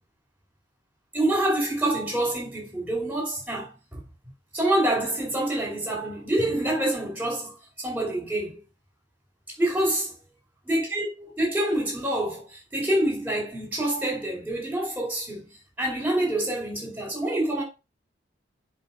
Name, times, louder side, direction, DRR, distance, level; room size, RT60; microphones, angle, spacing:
voice 1, 1.1-4.0 4.5-8.6 9.6-10.1 10.6-15.5 15.8-17.6, right 1 dB, 10° right, 4.6 m, -26 dB
7.7 x 5.0 x 6.3 m
head